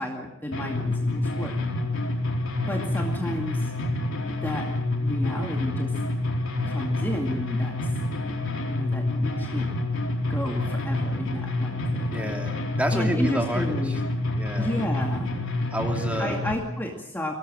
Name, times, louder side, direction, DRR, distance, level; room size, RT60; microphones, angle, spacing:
voice 1, 0.0-1.6 2.7-3.7 4.4-4.7 5.0-5.9 6.7-7.7 8.7-9.7 10.3-12.1 12.9-14.0 14.6-15.3 16.2-17.4, equal, 10° left, 0 dB, 2.3 m, -32 dB
sound 1, 0.5-16.5, left 2 dB, 65° left, 4.2 m, -28 dB
voice 2, 12.1-14.0 14.3-14.7 15.7-16.4, right 1 dB, 5° right, 2 dB, 2.9 m, -30 dB
24.0 x 18.5 x 7.6 m, 0.85 s
head